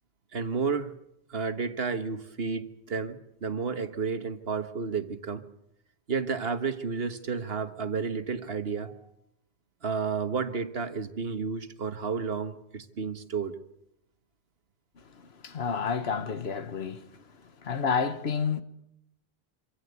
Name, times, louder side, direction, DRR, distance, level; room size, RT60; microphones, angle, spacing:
voice 1, 0.3-0.9 1.3-5.4 6.1-9.1 9.8-13.6, right 5 dB, 70° right, 1.5 m, -31 dB
voice 2, 15.3-17.2 17.6-18.6, left 6 dB, 70° left, 1.4 m, -30 dB
25.5 x 16.5 x 8.2 m
omnidirectional pair, 1.1 m